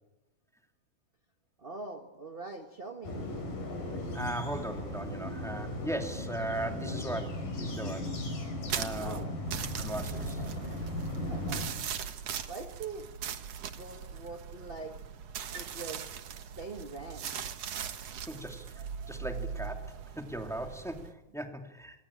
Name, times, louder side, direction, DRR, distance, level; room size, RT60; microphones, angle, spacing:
voice 1, 1.6-3.2 9.0-9.3 10.4-10.8 11.3-11.6 12.5-13.1 13.6-15.0 15.5-16.1 16.6-17.3, right 3 dB, 35° right, 4 dB, 0.9 m, -43 dB
sound 1, 3.0-11.7, left 1 dB, 75° left, 7.1 m, -37 dB
voice 2, 4.1-8.1 8.7-9.2 9.8-10.4 18.3-22.1, right 1 dB, ahead, 4 dB, 2.0 m, -38 dB
sound 2, 8.7-21.1, right 8 dB, 55° right, 2.2 m, -40 dB
27.0 x 25.0 x 8.7 m, 0.93 s
omnidirectional pair, 3.8 m